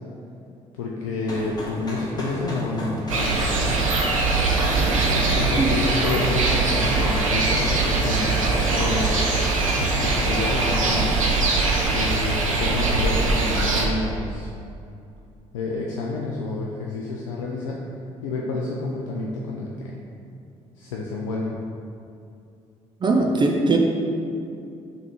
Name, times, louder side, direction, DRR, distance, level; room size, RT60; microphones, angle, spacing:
voice 1, 0.8-3.8 5.1-9.2 10.0-11.1 11.9-14.5 15.5-17.9 18.2-20.0 20.8-21.5, left 3 dB, 80° left, -3 dB, 0.4 m, -29 dB
sound 1, 1.3-11.1, left 1 dB, 25° left, 1.3 m, -34 dB
sound 2, 3.1-13.9, right 3 dB, 85° right, 0.4 m, -22 dB
voice 2, 23.0-23.8, right 3 dB, 30° right, 1 dB, 0.5 m, -20 dB
3.5 x 3.4 x 4.5 m, 2.5 s
figure-of-eight pair, 45°, 17 cm